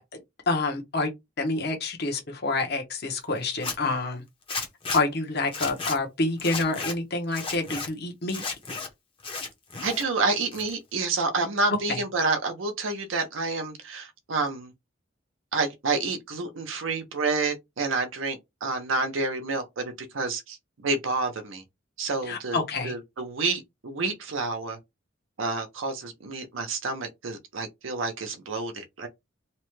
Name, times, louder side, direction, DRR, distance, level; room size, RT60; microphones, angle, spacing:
voice 1, 0.5-1.1 1.4-4.2 4.5-4.6 4.9-8.4 11.9-12.0 22.3-22.9, left 3 dB, 55° left, 0.9 m, -28 dB
Zipper (clothing), 3.5-3.8 4.5-5.0 5.5-6.0 6.4-6.9 7.3-7.9 8.3-8.9 9.2-10.0 10.4-11.0, left 4 dB, 30° left, 0.7 m, -33 dB
voice 2, 9.8-14.7 15.5-21.6 22.0-22.6 22.8-24.8 25.4-29.1, right 3 dB, 90° right, 0.7 m, -29 dB
2.9 x 2.2 x 3.1 m
head